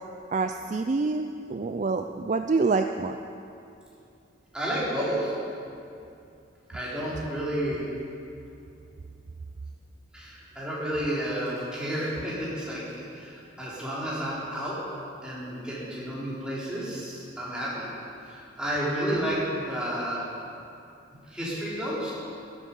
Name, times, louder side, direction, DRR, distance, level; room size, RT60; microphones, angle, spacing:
voice 1, 0.3-3.2, right 3 dB, 35° right, 6 dB, 0.3 m, -26 dB
voice 2, 4.5-5.3 6.7-7.8 10.1-14.8 15.2-17.8 18.2-19.4 19.7-20.2 21.3-22.1, right 1 dB, 5° right, -9 dB, 3.7 m, -31 dB
13.5 x 12.5 x 5.4 m, 2.6 s
head